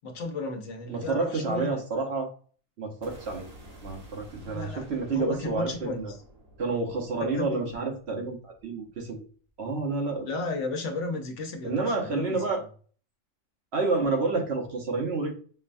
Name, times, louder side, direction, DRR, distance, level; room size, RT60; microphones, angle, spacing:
voice 1, 0.0-1.8 4.4-6.1 7.2-7.7 10.3-12.6, left 3 dB, 70° left, 4 dB, 1.0 m, -34 dB
voice 2, 0.9-2.3 2.8-3.5 3.8-6.1 6.6-9.2 9.6-10.3 11.6-12.6 13.7-15.3, right 3 dB, 60° right, 1 dB, 1.0 m, -29 dB
sound 1, 3.0-9.1, right 1 dB, 35° right, 0.8 m, -51 dB
5.3 x 2.2 x 2.5 m, 0.42 s
omnidirectional pair, 1.3 m